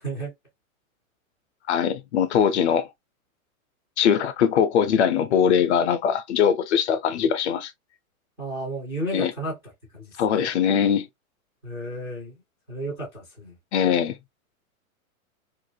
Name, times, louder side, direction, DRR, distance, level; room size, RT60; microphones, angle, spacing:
voice 1, 1.7-2.9 4.0-7.7 9.1-9.3 10.2-11.1 13.7-14.2, left 8 dB, 55° left, 0.6 m, -21 dB
voice 2, 8.4-9.6 9.9-10.4 11.6-12.4 12.7-13.5, right 1 dB, 5° right, 0.3 m, -32 dB
2.6 x 2.2 x 2.6 m
hypercardioid pair, 150°, 42 cm